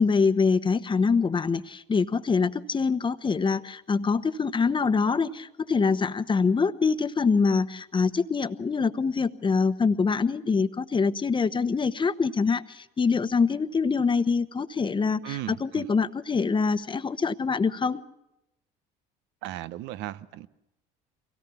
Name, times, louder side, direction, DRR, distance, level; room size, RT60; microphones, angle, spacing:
voice 1, 0.0-18.0, left 5 dB, 25° left, 1.1 m, -24 dB
voice 2, 15.2-15.9 19.4-20.5, right 15 dB, 70° right, 0.9 m, -36 dB
23.5 x 17.5 x 7.1 m
supercardioid pair, 80°, 20 cm